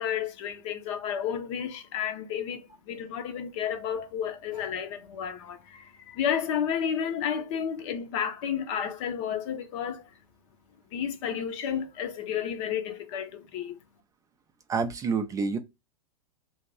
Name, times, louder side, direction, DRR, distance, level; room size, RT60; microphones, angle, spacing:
voice 1, 0.0-10.2 10.9-13.8, left 8 dB, 50° left, 0.7 m, -32 dB
voice 2, 14.7-15.6, right 5 dB, 15° right, 0.3 m, -28 dB
2.6 x 2.5 x 3.2 m
hypercardioid pair, 105°, 20 cm